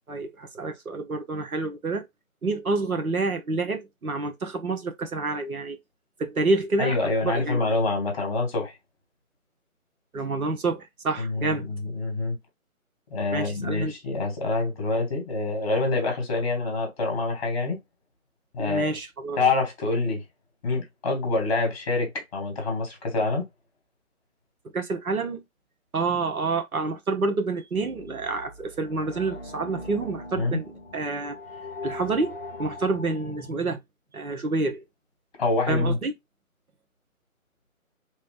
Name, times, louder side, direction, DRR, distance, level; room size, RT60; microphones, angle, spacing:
voice 1, 0.1-2.0 2.4-5.8 6.2-7.6 10.1-11.6 13.3-13.9 18.6-19.4 24.7-25.4 25.9-31.4 31.8-33.8 34.1-34.8 35.7-36.1, right 3 dB, 90° right, 1.0 m, -28 dB
voice 2, 6.8-8.7 11.2-12.4 13.1-17.8 18.5-18.9 19.3-20.2 20.6-23.5 30.4-30.6 35.4-36.0, left 3 dB, 25° left, 1.2 m, -26 dB
sound 1, 27.7-33.5, left 2 dB, 45° left, 0.7 m, -41 dB
3.0 x 2.3 x 3.2 m
figure-of-eight pair, 155°, 42 cm